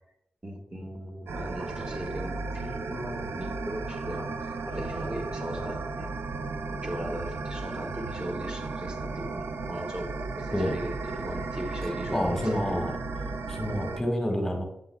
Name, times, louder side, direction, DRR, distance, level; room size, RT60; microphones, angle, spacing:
voice 1, 0.4-6.1 6.7-12.9, equal, 20° right, 2 dB, 1.4 m, -38 dB
sound 1, 1.3-14.0, right 3 dB, 85° right, 0.5 m, -35 dB
voice 2, 12.1-12.9 13.5-14.6, equal, 10° left, 1 dB, 1.5 m, -28 dB
8.3 x 7.6 x 2.3 m, 0.85 s
wide cardioid pair, 80°, 4 cm